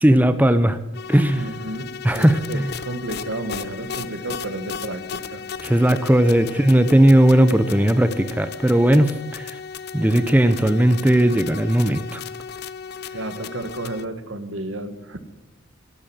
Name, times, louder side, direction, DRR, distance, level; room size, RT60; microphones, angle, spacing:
voice 1, 0.0-0.8 1.1-1.5 2.0-2.7 5.6-9.6 9.9-12.2, right 1 dB, 10° right, 11 dB, 0.6 m, -17 dB
sound 1, 0.9-14.1, left 6 dB, 55° left, 0.6 m, -35 dB
voice 2, 1.3-1.9 2.1-5.4 6.4-6.5 13.1-15.2, right 2 dB, 70° right, 10 dB, 1.6 m, -32 dB
12.5 x 12.0 x 7.7 m, 1.0 s
head